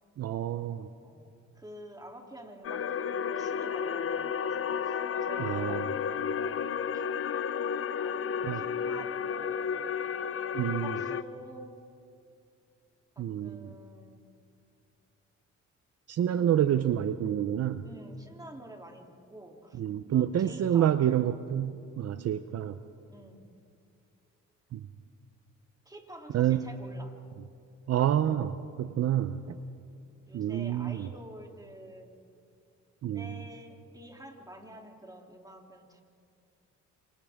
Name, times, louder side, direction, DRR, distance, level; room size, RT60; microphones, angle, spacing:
voice 1, 0.2-0.9 5.4-5.9 8.4-8.6 10.5-11.0 13.2-13.7 16.1-17.9 19.8-22.8 24.7-24.9 26.3-26.6 27.9-29.6 30.3-31.1 33.0-33.4, right 10 dB, 55° right, 11 dB, 0.7 m, -28 dB
voice 2, 1.0-6.6 6.9-7.1 8.0-10.0 10.8-11.8 13.1-14.3 16.3-16.6 16.9-17.0 17.8-19.8 20.1-20.9 23.1-23.4 25.8-27.1 29.8-32.1 33.1-36.0, right 1 dB, 10° right, 1 dB, 3.1 m, -49 dB
sound 1, 2.6-11.2, left 7 dB, 50° left, 0.8 m, -32 dB
29.0 x 27.0 x 3.6 m, 2.5 s
cardioid pair, 90°, 30 cm